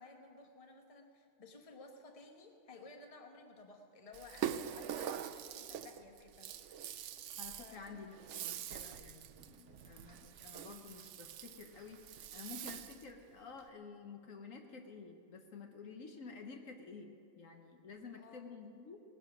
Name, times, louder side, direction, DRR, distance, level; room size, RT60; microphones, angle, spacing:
voice 1, 0.0-7.2 7.6-8.2 18.1-18.5, left 3 dB, 25° left, 4 dB, 1.1 m, -56 dB
Rattle (instrument), 4.1-13.1, right 9 dB, 65° right, 0.8 m, -44 dB
voice 2, 7.4-12.0 12.3-19.0, left 4 dB, 60° left, 4 dB, 1.4 m, -51 dB
18.5 x 10.5 x 6.1 m, 2.5 s
omnidirectional pair, 1.6 m